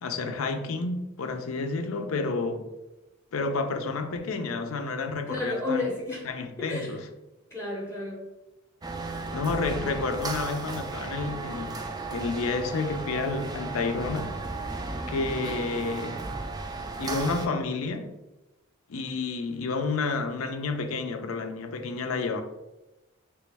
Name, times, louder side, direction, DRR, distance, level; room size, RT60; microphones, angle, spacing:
voice 1, 0.0-2.7 3.3-5.9 6.3-7.0 9.3-14.4 15.1-16.2 17.0-18.0 18.9-22.4, left 3 dB, 80° left, 0.5 m, -30 dB
voice 2, 5.3-6.3 6.6-7.0 7.5-8.3 9.6-9.9, left 2 dB, 10° left, 0.7 m, -32 dB
sound 1, 8.8-17.5, right 3 dB, 20° right, 0.3 m, -35 dB
3.3 x 3.0 x 3.4 m
head